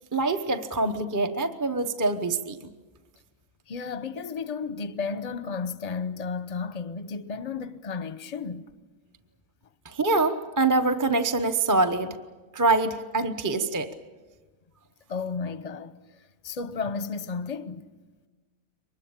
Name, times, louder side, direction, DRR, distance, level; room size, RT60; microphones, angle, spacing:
voice 1, 0.1-2.7 9.8-12.2 12.5-13.9, right 3 dB, 15° right, 0.8 m, -25 dB
voice 2, 3.7-8.6 15.1-17.9, left 5 dB, 35° left, 0.8 m, -33 dB
23.5 x 21.0 x 8.8 m
omnidirectional pair, 1.6 m